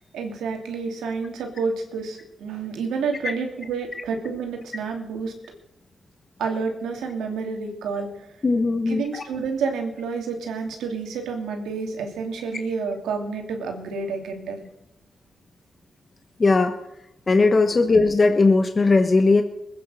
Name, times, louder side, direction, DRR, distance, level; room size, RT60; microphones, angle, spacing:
voice 1, 0.1-5.5 6.4-8.3 8.9-14.6, right 5 dB, 85° right, 3 dB, 2.7 m, -29 dB
voice 2, 8.4-9.2 16.4-16.8 17.3-19.4, left 3 dB, 40° left, 7 dB, 1.4 m, -18 dB
21.0 x 9.5 x 6.4 m, 0.87 s
supercardioid pair, 50°, 0 cm